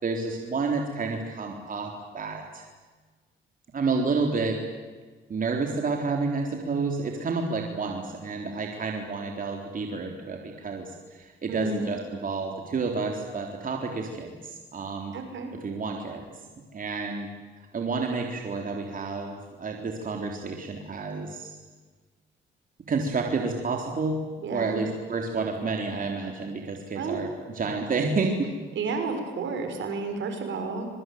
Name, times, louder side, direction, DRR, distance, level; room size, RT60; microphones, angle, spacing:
voice 1, 0.0-2.7 3.7-4.6 5.3-15.1 15.6-16.3 16.7-17.3 17.7-21.6 22.9-27.3 27.5-28.5, right 4 dB, 45° right, 2 dB, 3.9 m, -30 dB
voice 2, 11.5-11.9 15.1-15.5 24.4-24.8 26.9-27.2 28.7-30.9, right 4 dB, 70° right, 5 dB, 6.2 m, -31 dB
26.0 x 23.0 x 9.5 m, 1.4 s
cardioid pair, 90°, 20 cm